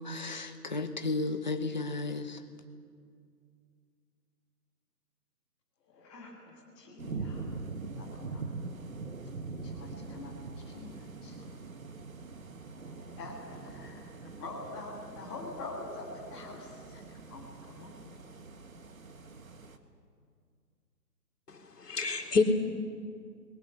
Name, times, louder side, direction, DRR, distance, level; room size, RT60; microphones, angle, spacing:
voice 1, 0.0-2.4, left 3 dB, 30° left, 1.0 m, -34 dB
voice 2, 5.9-7.5 8.0-8.6 9.6-11.6 12.7-14.0 14.3-18.2, left 2 dB, 5° left, 1.5 m, -45 dB
sound 1, 7.0-19.8, right 4 dB, 55° right, 1.7 m, -43 dB
voice 3, 21.5-22.4, left 4 dB, 70° left, 3.1 m, -28 dB
29.5 x 21.5 x 6.8 m
hypercardioid pair, 170°, 48 cm